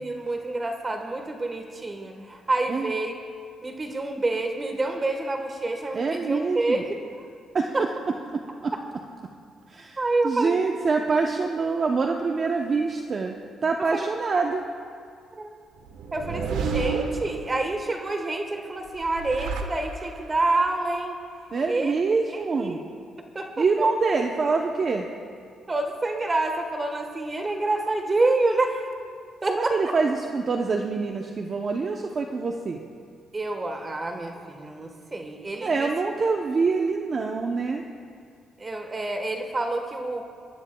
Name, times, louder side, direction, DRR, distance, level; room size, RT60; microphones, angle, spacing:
voice 1, 0.0-3.1 3.6-7.0 7.7-7.9 8.7-8.8 10.0-10.6 11.2-11.3 13.9-14.1 15.4-15.5 16.1-21.2 21.7-22.0 22.3-22.8 23.3-23.9 25.7-28.9 29.4-29.9 33.3-35.9 38.6-40.2, right 2 dB, 25° right, 4 dB, 1.3 m, -27 dB
voice 2, 5.9-6.8 7.5-7.9 8.3-8.7 9.7-10.0 10.2-13.4 13.6-14.6 21.5-22.8 23.6-25.1 29.5-32.8 35.6-37.8, right 4 dB, 45° right, 2 dB, 0.7 m, -25 dB
sound 1, 15.8-17.8 18.9-20.4, right 5 dB, 85° right, 1.1 m, -30 dB
24.0 x 12.0 x 2.3 m, 2.2 s
cardioid pair, 90°, 0 cm